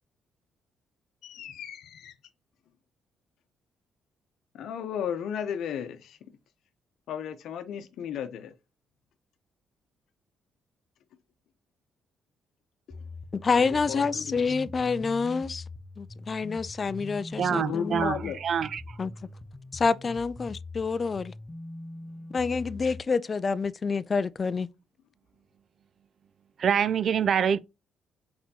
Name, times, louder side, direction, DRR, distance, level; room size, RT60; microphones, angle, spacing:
voice 1, 1.2-2.1 4.5-6.2 7.1-8.5 13.6-14.4 17.5-18.4, left 8 dB, 75° left, 0.7 m, -34 dB
sound 1, 12.9-23.0, left 2 dB, 15° left, 0.8 m, -42 dB
voice 2, 13.3-15.6 16.0-18.3 19.0-19.3 19.7-21.3 22.3-24.7, left 4 dB, 35° left, 0.3 m, -28 dB
voice 3, 17.4-19.0 26.6-27.6, right 8 dB, 55° right, 0.3 m, -26 dB
4.3 x 4.2 x 2.8 m
cardioid pair, 90°, 0 cm